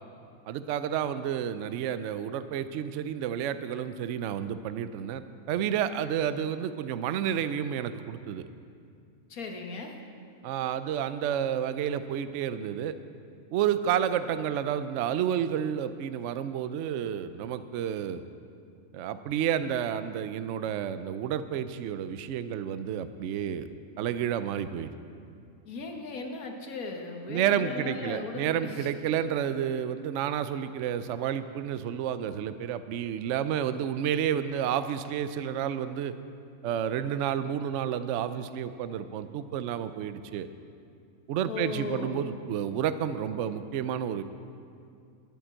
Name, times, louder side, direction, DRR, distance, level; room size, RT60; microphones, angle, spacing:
voice 1, 0.5-8.5 10.4-13.0 13.5-18.2 18.9-23.7 24.0-24.9 27.3-36.1 36.6-40.5 41.3-44.2, right 9 dB, 65° right, 12 dB, 0.8 m, -30 dB
voice 2, 9.3-10.0 25.7-28.9 41.5-42.2, left 3 dB, 85° left, 3 dB, 1.7 m, -37 dB
11.5 x 8.8 x 7.5 m, 2.4 s
omnidirectional pair, 1.5 m